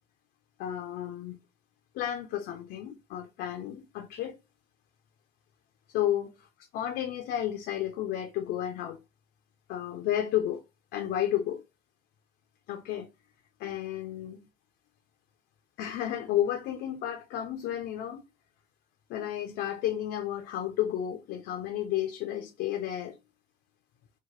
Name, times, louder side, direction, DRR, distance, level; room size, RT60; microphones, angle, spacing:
voice 1, 0.6-1.4 1.9-4.4 5.9-6.5 6.7-9.0 9.7-10.6 10.9-11.6 12.7-13.1 13.6-14.4 15.8-18.2 19.1-23.2, left 11 dB, 80° left, 0.5 m, -32 dB
2.9 x 2.1 x 3.0 m
cardioid pair, 110°, 17 cm